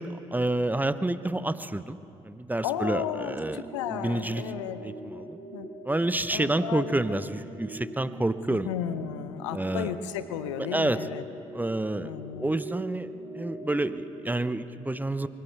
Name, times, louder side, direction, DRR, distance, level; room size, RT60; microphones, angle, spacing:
voice 1, 0.0-2.0 2.2-3.6 3.9-4.4 4.8-5.4 5.8-8.7 9.5-9.9 10.7-11.1 11.5-12.1 12.4-13.1 13.3-15.3, right 1 dB, 10° right, 13 dB, 0.8 m, -29 dB
voice 2, 2.6-4.8 5.5-5.7 6.3-6.9 8.5-11.2 12.0-12.5, left 10 dB, 85° left, 12 dB, 0.6 m, -34 dB
sound 1, 2.6-14.5, right 2 dB, 90° right, 2.0 m, -42 dB
24.0 x 18.0 x 3.4 m, 2.8 s
hypercardioid pair, 45°, 15 cm